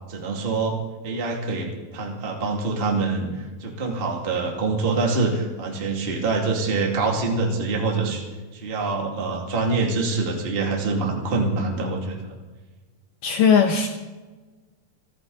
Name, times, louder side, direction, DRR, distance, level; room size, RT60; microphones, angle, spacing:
voice 1, 0.1-0.8 1.0-3.3 3.6-8.2 8.5-12.3, right 3 dB, 20° right, 0 dB, 1.7 m, -25 dB
voice 2, 13.2-13.9, left 6 dB, 70° left, 4 dB, 2.2 m, -18 dB
29.5 x 10.5 x 4.0 m, 1.3 s
omnidirectional pair, 4.8 m